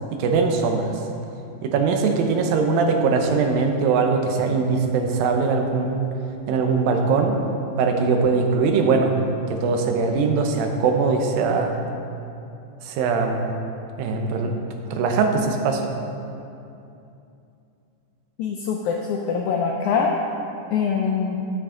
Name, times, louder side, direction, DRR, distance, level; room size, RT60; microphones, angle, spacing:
voice 1, 0.1-1.0 1.6-6.1 6.5-7.4 7.8-9.1 9.5-11.8 12.8-13.5 14.0-14.5 14.9-15.9, right 4 dB, 90° right, 4 dB, 2.5 m, -21 dB
voice 2, 18.4-20.2 20.7-21.4, left 6 dB, 85° left, 1 dB, 1.7 m, -23 dB
10.0 x 7.1 x 3.7 m, 2.7 s
omnidirectional pair, 4.0 m